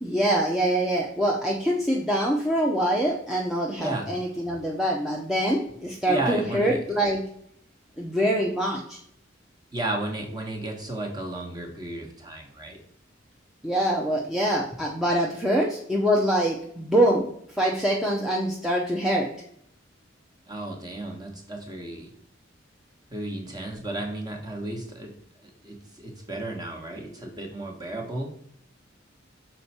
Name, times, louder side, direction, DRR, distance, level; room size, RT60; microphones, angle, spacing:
voice 1, 0.0-7.2 8.0-9.0 13.6-17.2 17.6-19.3, right 1 dB, ahead, -3 dB, 0.7 m, -24 dB
voice 2, 6.1-6.8 9.7-12.8 20.5-22.1 23.1-25.1 25.4-28.3, right 2 dB, 20° right, 1 dB, 1.2 m, -33 dB
6.3 x 4.4 x 4.2 m, 0.68 s
head